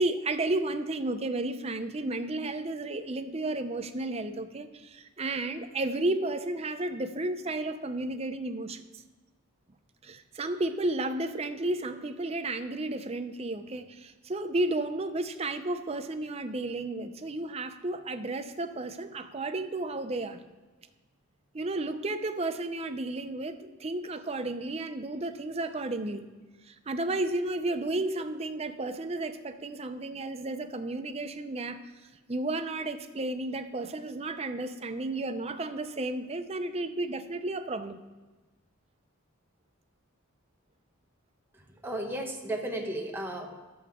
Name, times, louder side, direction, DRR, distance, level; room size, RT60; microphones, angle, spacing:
voice 1, 0.0-9.0 10.0-20.4 21.5-26.2 26.6-31.9 32.3-38.0, right 2 dB, 30° right, 9 dB, 0.5 m, -32 dB
voice 2, 41.8-43.6, right 1 dB, 10° right, 1 dB, 1.1 m, -34 dB
11.5 x 7.8 x 3.7 m, 1.2 s
head